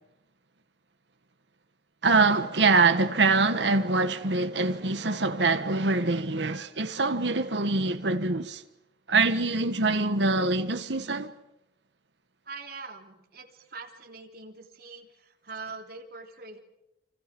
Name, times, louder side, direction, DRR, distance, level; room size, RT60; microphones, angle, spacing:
voice 1, 2.0-8.6 9.1-11.3, right 3 dB, 85° right, 1.5 m, -24 dB
voice 2, 12.5-16.6, right 4 dB, 60° right, 3.5 m, -43 dB
29.5 x 26.0 x 6.1 m
head